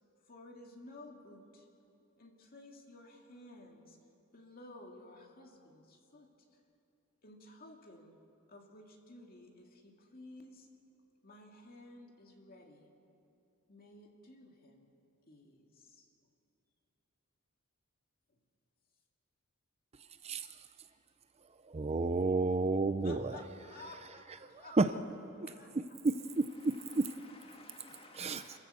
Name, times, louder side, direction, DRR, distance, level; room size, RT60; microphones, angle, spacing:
voice 1, 0.2-1.7 2.2-4.0 4.3-6.3 7.2-8.2 8.5-10.7 11.2-12.9 13.7-14.9 15.3-16.1 18.3-18.4 23.0-25.0 25.3-26.0, left 2 dB, 45° left, 2 dB, 2.4 m, -54 dB
voice 2, 21.7-23.3 24.7-24.9 26.0-27.1 28.1-28.6, right 3 dB, 30° right, 10 dB, 0.5 m, -31 dB
voice 3, 26.5-28.6, left 2 dB, 25° left, 2 dB, 2.1 m, -56 dB
28.0 x 15.0 x 6.8 m, 2.7 s
head